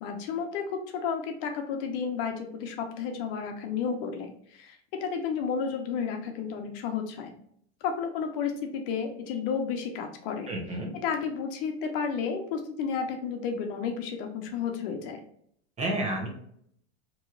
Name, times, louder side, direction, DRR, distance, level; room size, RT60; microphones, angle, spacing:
voice 1, 0.0-7.3 7.8-10.5 10.9-15.2, left 6 dB, 55° left, 5 dB, 0.9 m, -32 dB
voice 2, 10.5-10.9 15.8-16.3, right 1 dB, 20° right, 1 dB, 1.0 m, -30 dB
4.4 x 3.1 x 2.4 m, 0.66 s
supercardioid pair, 140°, 33 cm